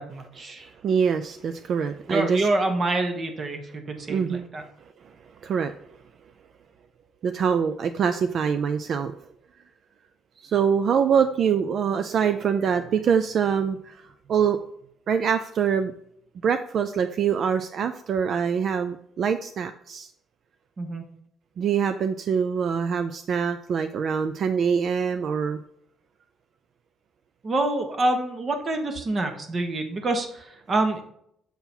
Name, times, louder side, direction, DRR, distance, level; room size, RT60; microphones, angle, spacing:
voice 1, 0.0-0.7 2.1-4.6 20.8-21.0 27.4-31.0, right 2 dB, 35° right, 5 dB, 1.2 m, -26 dB
voice 2, 0.8-2.5 4.1-4.5 5.4-5.7 7.2-9.2 10.4-14.6 15.1-15.9 16.4-20.1 21.6-25.6, right 7 dB, 55° right, 9 dB, 0.4 m, -24 dB
7.0 x 3.8 x 4.4 m, 0.71 s
cardioid pair, 110°, 0 cm